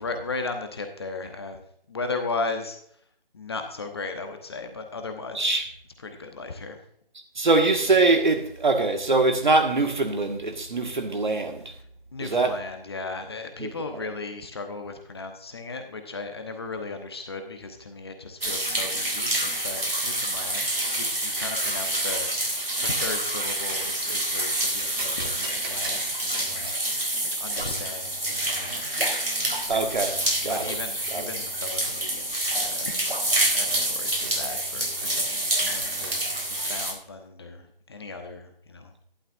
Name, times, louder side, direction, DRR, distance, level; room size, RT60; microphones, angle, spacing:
voice 1, 0.0-1.6 1.9-2.8 3.3-5.6 6.0-6.8 12.1-20.7 21.0-22.5 22.8-27.1 27.4-28.9 29.5-30.1 30.5-33.2 33.5-38.9, left 3 dB, 25° left, 1.0 m, -36 dB
voice 2, 5.4-5.7 7.4-11.6 12.2-12.5 13.6-13.7 29.7-30.8 31.1-31.2, right 3 dB, 55° right, 1.8 m, -23 dB
sound 1, 18.4-36.9, right 1 dB, 85° right, 3.9 m, -27 dB
sound 2, 20.3-22.0 22.5-24.0 24.4-26.8 27.6-27.7 27.9-28.8 30.0-30.7 31.0-32.3 33.6-35.1 35.6-36.9, right 2 dB, 25° right, 1.6 m, -43 dB
12.0 x 11.5 x 2.6 m
figure-of-eight pair, 155°, 29 cm